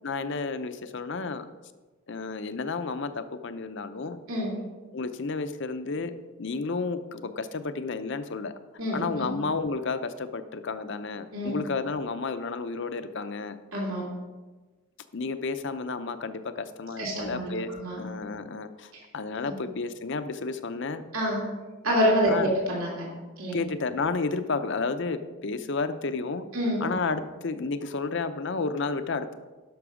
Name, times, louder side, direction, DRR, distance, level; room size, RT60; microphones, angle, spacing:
voice 1, 0.0-1.5 2.1-4.2 4.9-8.5 8.9-13.6 15.1-21.0 22.3-22.5 23.5-26.4 26.8-29.3, left 4 dB, 55° left, 10 dB, 0.6 m, -31 dB
voice 2, 8.8-9.3 11.3-11.6 13.7-14.0 17.0-18.0 18.9-19.0 19.4-19.5 21.1-21.4 21.8-23.0 23.4-23.6 26.5-26.8, equal, 80° right, -3 dB, 2.9 m, -27 dB
12.0 x 6.1 x 5.0 m, 1.2 s
head